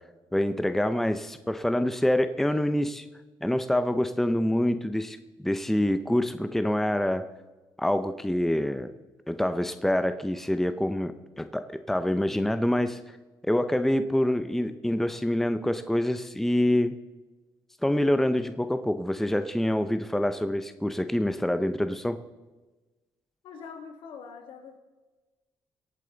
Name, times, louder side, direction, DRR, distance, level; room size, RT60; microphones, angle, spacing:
voice 1, 0.3-3.0 3.4-7.2 7.8-8.9 9.3-13.0 13.4-16.9 17.8-22.2, left 1 dB, 5° left, 10 dB, 0.7 m, -26 dB
voice 2, 23.4-24.8, left 5 dB, 80° left, 4 dB, 2.2 m, -43 dB
23.5 x 8.4 x 4.0 m, 1.2 s
cardioid pair, 95°, 9 cm